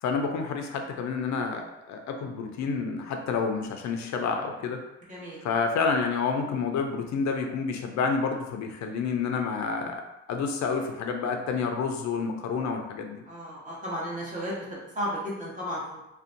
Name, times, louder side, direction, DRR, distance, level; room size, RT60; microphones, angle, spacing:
voice 1, 0.0-4.8 5.4-10.0 10.3-13.2, left 5 dB, 65° left, 4 dB, 0.5 m, -29 dB
voice 2, 5.1-5.4 13.3-14.6 15.0-16.0, equal, 25° right, -7 dB, 1.0 m, -33 dB
2.6 x 2.2 x 2.5 m, 0.92 s
cardioid pair, 90°, 30 cm